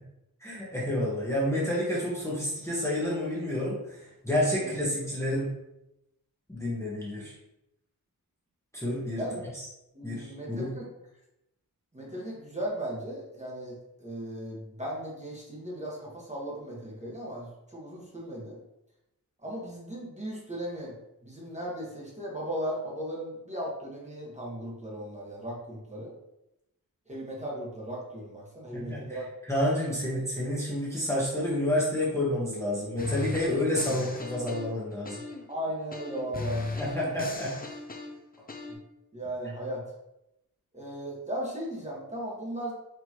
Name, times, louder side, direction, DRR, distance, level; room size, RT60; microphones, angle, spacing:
voice 1, 0.4-5.5 6.5-7.3 8.7-9.2 10.0-10.7 28.7-29.2 29.5-35.2 36.8-37.5, left 1 dB, 10° left, -7 dB, 1.1 m, -29 dB
voice 2, 9.9-10.9 11.9-18.6 19.4-20.9 21.2-26.1 27.1-29.3 33.5-33.7 35.5-36.9 38.7-38.8 39.1-39.8 40.7-42.7, right 1 dB, 20° right, -5 dB, 1.3 m, -37 dB
sound 1, 33.0-35.5 35.9-38.7, left 3 dB, 25° left, 0.5 m, -37 dB
4.6 x 3.0 x 2.9 m, 0.88 s
wide cardioid pair, 70°, 36 cm